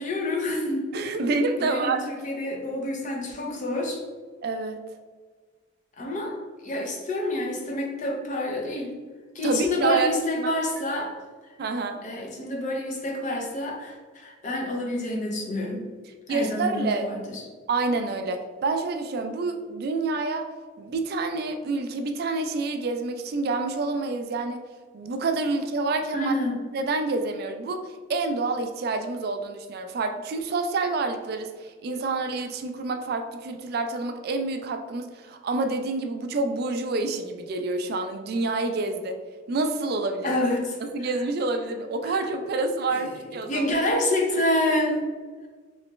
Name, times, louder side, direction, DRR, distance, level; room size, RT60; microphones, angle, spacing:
voice 1, 0.0-0.8 1.6-4.0 6.0-6.4 6.6-8.9 9.3-11.1 12.0-15.8 16.3-17.4 26.1-26.6 40.2-41.1 42.1-42.2 43.0-45.0, left 1 dB, 40° left, 0 dB, 0.6 m, -28 dB
voice 2, 0.9-2.1 4.4-4.8 9.4-10.1 10.4-10.5 11.6-12.0 16.3-17.1 17.7-20.5 20.8-24.6 24.9-26.3 26.7-39.2 39.5-40.3 40.9-43.7, right 3 dB, 55° right, 6 dB, 0.3 m, -28 dB
3.2 x 3.1 x 3.0 m, 1.5 s
head